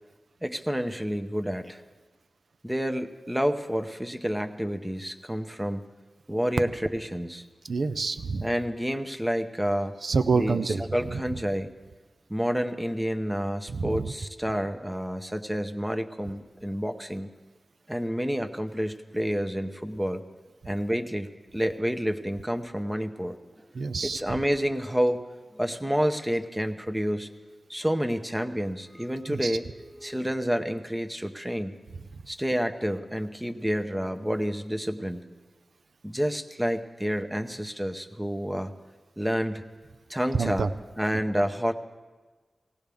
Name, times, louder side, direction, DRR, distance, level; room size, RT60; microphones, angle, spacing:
voice 1, 0.4-1.8 2.6-5.8 6.3-7.4 8.4-10.0 10.4-11.7 12.3-17.3 17.9-20.2 20.7-21.3 21.5-23.4 24.0-25.2 25.5-27.3 27.7-31.7 32.3-35.3 36.0-38.7 39.2-39.7 40.1-40.7 41.0-41.7, equal, 10° right, 7 dB, 0.8 m, -29 dB
voice 2, 7.7-8.5 10.0-11.2 13.7-14.1 23.7-24.2 29.3-29.6 40.3-40.7, right 4 dB, 75° right, 10 dB, 0.5 m, -27 dB
18.5 x 17.5 x 3.5 m, 1.3 s
wide cardioid pair, 90°, 0 cm